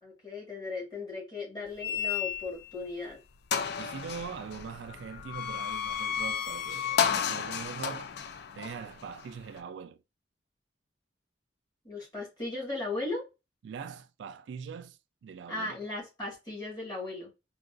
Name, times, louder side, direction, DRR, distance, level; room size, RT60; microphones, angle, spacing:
voice 1, 0.0-3.2 11.8-13.2 15.5-17.3, left 2 dB, 25° left, 1.6 m, -37 dB
sound 1, 1.8-2.7 3.1-3.2 3.5-9.6, left 8 dB, 65° left, 0.4 m, -33 dB
voice 2, 3.8-8.1 8.6-10.0 13.6-15.8, right 6 dB, 80° right, 0.3 m, -42 dB
3.7 x 2.4 x 2.4 m
head